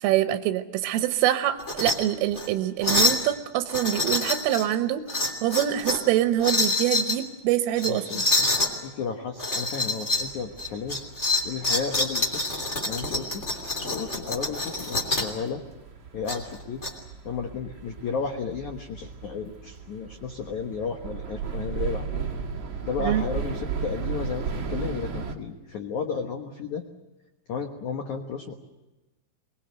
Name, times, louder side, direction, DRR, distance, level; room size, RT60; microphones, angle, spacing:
voice 1, 0.0-8.2 23.0-23.2, right 12 dB, 85° right, 8 dB, 3.5 m, -25 dB
sound 1, 1.6-2.0 2.3-2.5 2.8-3.2 3.7-4.7 5.1-6.1 6.4-7.2 7.8-8.7 9.4-10.3 10.6-15.3 16.3-16.9, left 2 dB, 20° left, 2.4 m, -26 dB
voice 2, 7.8-8.5 8.8-11.0 11.4-12.4 12.9-13.4 13.9-15.6 16.1-16.8 17.2-22.2 22.8-26.8 27.5-28.5, left 5 dB, 85° left, 4 dB, 1.7 m, -33 dB
sound 2, 10.2-25.3, right 6 dB, 45° right, 1.6 m, -36 dB
23.5 x 21.0 x 7.9 m, 1.1 s
omnidirectional pair, 5.7 m